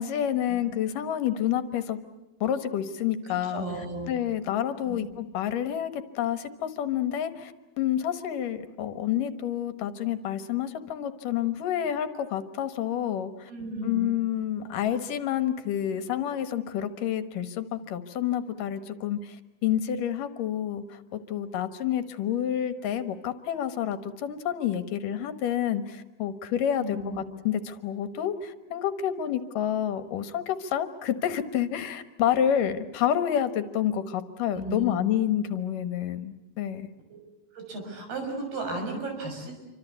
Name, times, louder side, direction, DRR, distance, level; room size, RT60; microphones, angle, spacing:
voice 1, 0.0-2.0 2.4-3.6 4.1-7.5 7.8-13.5 13.8-36.9, left 10 dB, 70° left, 11 dB, 2.8 m, -29 dB
voice 2, 3.3-4.1 4.8-5.0 13.5-14.1 26.8-27.2 34.5-35.0 37.1-37.2 37.5-39.5, right 1 dB, 85° right, 3 dB, 8.6 m, -34 dB
28.0 x 25.5 x 8.3 m, 1.0 s
omnidirectional pair, 4.3 m